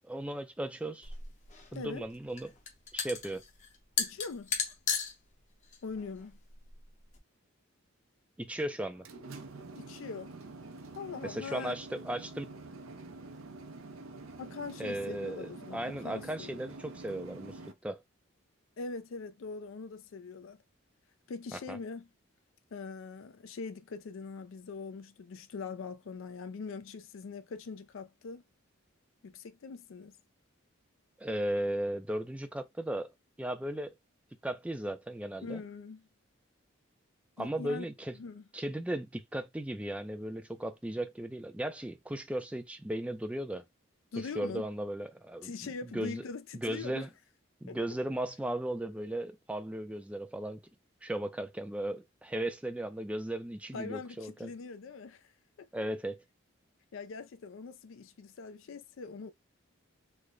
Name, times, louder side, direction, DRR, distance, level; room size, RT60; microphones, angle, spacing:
voice 1, 0.0-1.1 1.7-2.5 2.9-3.4 8.4-9.1 11.2-12.5 14.8-18.0 21.5-21.8 31.2-33.1 33.4-33.9 34.4-35.6 37.4-38.2 38.5-43.6 44.2-45.5 45.9-46.2 46.5-47.1 47.6-50.6 51.0-54.5 55.7-56.2, right 1 dB, 5° right, 0.3 m, -36 dB
sound 1, 1.0-7.2, left 6 dB, 35° left, 0.7 m, -37 dB
voice 2, 1.7-2.0 4.0-4.6 5.8-6.4 9.7-10.4 11.0-11.8 14.4-16.5 18.8-20.6 21.3-22.1 22.7-28.4 29.2-30.2 35.4-36.0 37.4-37.9 38.2-38.4 44.1-44.7 45.4-47.1 47.7-47.8 53.7-55.3 55.6-55.7 56.9-59.3, left 4 dB, 70° left, 0.4 m, -42 dB
sound 2, 8.8-17.7, right 3 dB, 80° right, 0.6 m, -47 dB
3.2 x 2.1 x 3.7 m
head